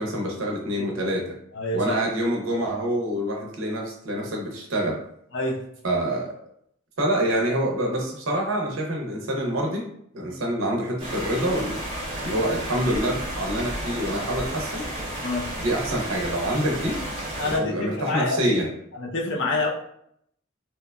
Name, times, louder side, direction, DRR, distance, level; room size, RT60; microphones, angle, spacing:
voice 1, 0.0-1.3 1.7-5.0 5.8-6.3 7.0-9.8 10.1-11.8 12.2-14.9 15.6-17.0 17.4-18.7, right 1 dB, 70° right, 0 dB, 0.6 m, -26 dB
voice 2, 1.5-2.0 5.3-5.6 10.3-10.4 15.2-15.5 17.4-18.6 19.0-19.7, left 2 dB, 55° left, -2 dB, 0.5 m, -27 dB
sound 1, 11.0-17.6, right 1 dB, 25° right, 0.7 m, -32 dB
2.8 x 2.2 x 2.2 m, 0.71 s
head